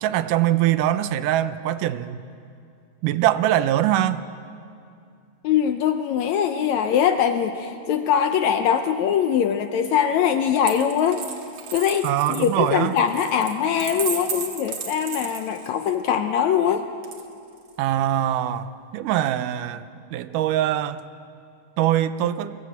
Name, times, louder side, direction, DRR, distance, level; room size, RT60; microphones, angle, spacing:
voice 1, 0.0-2.2 3.0-4.3 12.0-12.9 17.8-19.8 20.1-21.0 21.8-22.6, right 12 dB, 80° right, 13 dB, 2.1 m, -22 dB
voice 2, 5.4-11.2 11.7-16.8, left 8 dB, 75° left, 7 dB, 1.8 m, -22 dB
Coin (dropping), 10.6-15.9 17.0-17.7, right 7 dB, 55° right, 2.3 m, -34 dB
23.0 x 16.0 x 8.0 m, 2.4 s
omnidirectional pair, 3.8 m